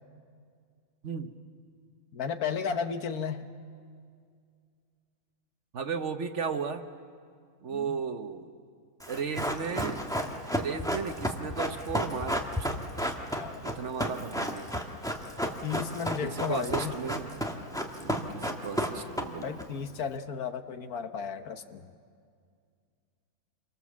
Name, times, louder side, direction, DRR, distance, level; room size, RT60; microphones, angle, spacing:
voice 1, 2.1-3.5 7.7-8.0 13.3-13.6 15.6-17.0 19.4-21.9, left 6 dB, 75° left, 9 dB, 1.6 m, -34 dB
voice 2, 5.7-6.9 7.6-8.5 9.1-10.0 10.6-12.7 13.6-14.7 16.2-17.4 18.0-19.6, right 6 dB, 55° right, 8 dB, 1.2 m, -35 dB
Run, 9.0-19.6 19.9-20.0, equal, ahead, 1.6 m, -32 dB
28.5 x 24.0 x 7.3 m, 2.2 s
omnidirectional pair, 1.6 m